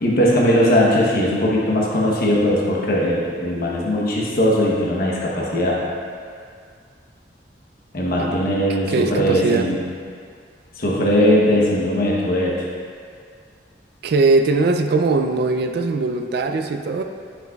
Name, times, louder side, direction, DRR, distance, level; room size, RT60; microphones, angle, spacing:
voice 1, 0.0-5.8 7.9-9.8 10.8-12.5, equal, 55° left, -4 dB, 0.9 m, -19 dB
voice 2, 8.9-9.7 14.0-17.0, right 3 dB, 65° right, 6 dB, 0.4 m, -20 dB
10.0 x 6.0 x 2.3 m, 2.1 s
head